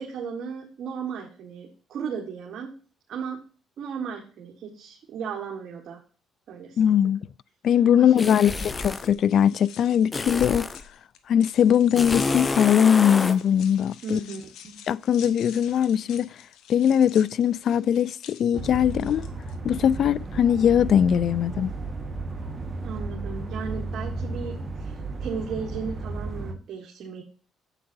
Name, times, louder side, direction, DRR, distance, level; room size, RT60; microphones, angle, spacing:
voice 1, 0.0-2.7 3.1-3.4 3.8-6.0 6.5-6.8 7.9-8.5 14.0-14.8 22.8-27.2, right 6 dB, 60° right, 1.6 m, -35 dB
voice 2, 6.8-7.3 7.6-10.7 11.3-14.2 14.9-16.3 16.7-19.3 19.6-21.7, left 9 dB, 60° left, 0.3 m, -21 dB
sound 1, 8.2-9.1 10.1-10.8 12.0-13.4, left 3 dB, 25° left, 0.6 m, -28 dB
sound 2, 8.8-19.6, left 9 dB, 80° left, 1.0 m, -48 dB
sound 3, 18.5-26.5, right 3 dB, 30° right, 1.6 m, -34 dB
9.9 x 7.8 x 2.7 m
cardioid pair, 85°, 0 cm